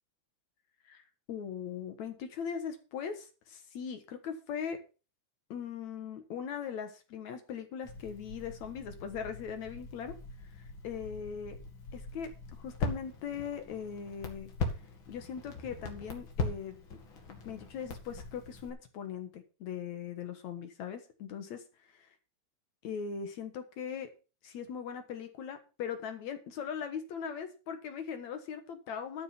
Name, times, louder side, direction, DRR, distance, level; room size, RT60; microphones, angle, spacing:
voice 1, 1.3-4.8 5.5-11.6 11.9-14.5 15.1-16.8 17.3-21.6 21.9-22.1 22.8-24.1 24.4-29.2, left 7 dB, 70° left, 7 dB, 2.6 m, -40 dB
Crackle, 7.8-18.7, left 3 dB, 45° left, 2.7 m, -41 dB
12.5 x 6.6 x 5.8 m, 0.32 s
omnidirectional pair, 3.5 m